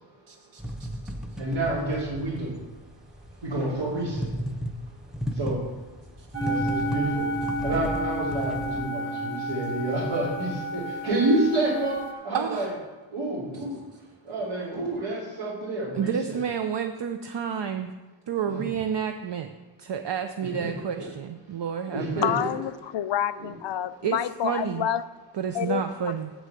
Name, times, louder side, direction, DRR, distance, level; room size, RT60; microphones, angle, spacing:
voice 1, 0.3-1.4 6.2-6.5 12.3-12.7 13.5-14.0 15.9-17.9 18.3-19.5 19.8-22.3 24.0-24.9 25.3-26.3, right 7 dB, 65° right, 6 dB, 0.6 m, -31 dB
sound 1, 0.6-8.8, equal, ahead, 0.7 m, -35 dB
voice 2, 1.4-2.6 3.4-4.3 5.3-5.6 6.4-12.7 13.1-13.8 14.2-16.1 18.5-18.6 20.6-20.7 21.0-21.1 21.9-22.5 23.4-23.5, right 2 dB, 85° right, -11 dB, 3.1 m, -29 dB
sound 2, 6.3-12.1, right 1 dB, 35° right, 1.2 m, -31 dB
voice 3, 22.2-25.0 25.5-25.8, left 10 dB, 70° left, 14 dB, 0.5 m, -28 dB
7.6 x 6.3 x 7.7 m, 1.2 s
wide cardioid pair, 95°, 46 cm